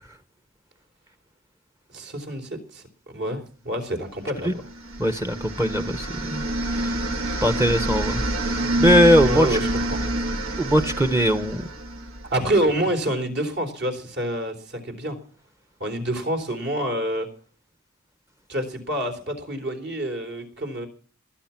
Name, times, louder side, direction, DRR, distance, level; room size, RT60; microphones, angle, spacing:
voice 1, 1.9-4.6 9.3-10.1 12.3-15.2 15.8-17.3 18.5-20.9, right 1 dB, 60° right, 3.8 m, -27 dB
sound 1, 4.6-12.5, right 1 dB, 75° right, 1.6 m, -27 dB
voice 2, 5.0-6.5 7.4-8.2 8.8-9.5 10.6-11.6, equal, 15° right, 0.9 m, -20 dB
19.5 x 9.8 x 5.8 m
head